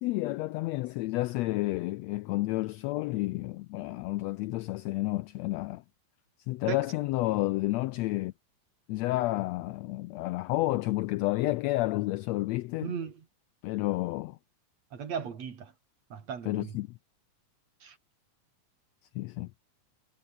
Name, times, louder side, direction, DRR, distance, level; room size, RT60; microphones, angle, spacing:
voice 1, 0.0-5.8 6.5-8.3 8.9-12.9 13.6-14.4 16.4-17.0 19.1-19.5, left 19 dB, 80° left, 1.5 m, -30 dB
voice 2, 12.8-13.2 14.9-15.7 16.1-16.7 17.8-18.0, right 7 dB, 60° right, 3.7 m, -36 dB
omnidirectional pair, 3.5 m